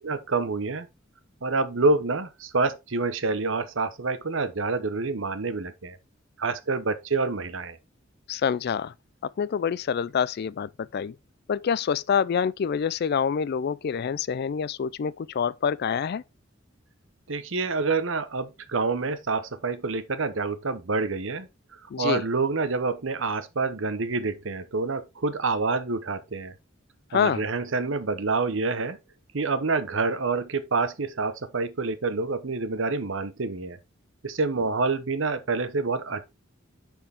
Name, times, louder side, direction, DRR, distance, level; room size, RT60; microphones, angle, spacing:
voice 1, 0.0-0.9 1.4-6.0 6.4-7.8 17.3-21.5 22.0-26.5 27.1-29.0 29.3-33.8 34.2-36.3, right 3 dB, 65° right, 0.9 m, -27 dB
voice 2, 8.3-8.9 9.2-11.1 11.5-16.2 21.9-22.2 27.1-27.4, left 7 dB, 50° left, 0.3 m, -26 dB
9.7 x 4.5 x 3.5 m
head